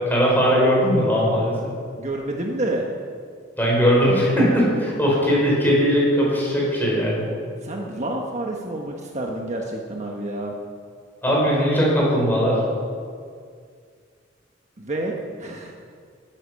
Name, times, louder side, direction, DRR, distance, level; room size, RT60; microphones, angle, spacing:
voice 1, 0.1-1.7 3.6-7.3 11.2-12.6, equal, 10° left, -4 dB, 4.8 m, -19 dB
voice 2, 2.0-2.9 7.6-10.5 14.8-15.7, right 1 dB, 40° right, 0 dB, 1.2 m, -29 dB
15.0 x 10.0 x 6.4 m, 2.1 s
head